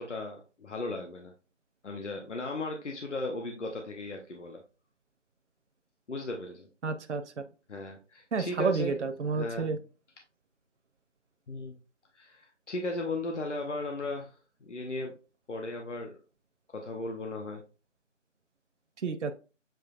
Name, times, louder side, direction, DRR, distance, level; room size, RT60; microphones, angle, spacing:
voice 1, 0.0-1.3 1.8-4.6 6.1-6.7 7.7-9.0 9.3-9.8 11.5-11.7 12.1-14.4 14.6-15.2 15.5-16.2 16.7-17.6, left 2 dB, 70° left, 2 dB, 1.0 m, -36 dB
voice 2, 6.8-7.2 8.3-9.8 19.0-19.3, right 4 dB, 65° right, 7 dB, 0.6 m, -30 dB
7.5 x 2.8 x 2.4 m, 0.33 s
figure-of-eight pair, 175°, 37 cm